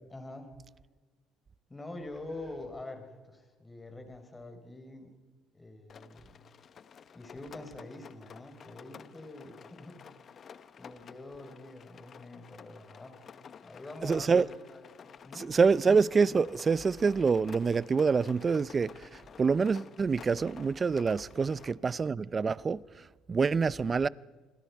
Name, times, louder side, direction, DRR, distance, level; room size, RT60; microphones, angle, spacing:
voice 1, 0.1-0.5 1.7-5.1 5.5-6.4 7.1-10.1 10.3-13.2 13.6-14.9 15.2-15.5 21.3-21.6, left 2 dB, 15° left, 4.2 m, -46 dB
Rain, 5.9-21.7, left 7 dB, 45° left, 1.0 m, -52 dB
voice 2, 14.0-14.5 15.4-22.8 23.3-24.1, right 5 dB, 30° right, 0.5 m, -26 dB
27.5 x 21.5 x 4.7 m
cardioid pair, 95°, 0 cm